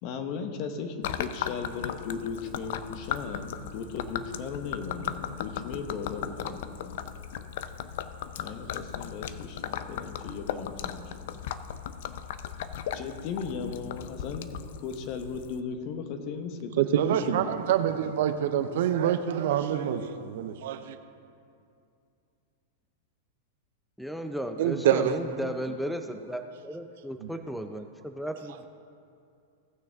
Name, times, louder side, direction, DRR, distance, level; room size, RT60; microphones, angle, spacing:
voice 1, 0.0-7.0 8.4-11.4 12.9-14.5 14.8-17.1 17.4-17.5, left 5 dB, 50° left, 6 dB, 1.2 m, -37 dB
Gurgling / Liquid, 1.0-15.6, left 9 dB, 65° left, 0.5 m, -37 dB
voice 2, 16.8-21.0 24.6-25.5 27.2-27.3, right 9 dB, 65° right, 10 dB, 0.7 m, -26 dB
voice 3, 24.0-28.7, equal, ahead, 7 dB, 0.5 m, -35 dB
17.5 x 6.3 x 3.6 m, 2.5 s
hypercardioid pair, 115°, 0 cm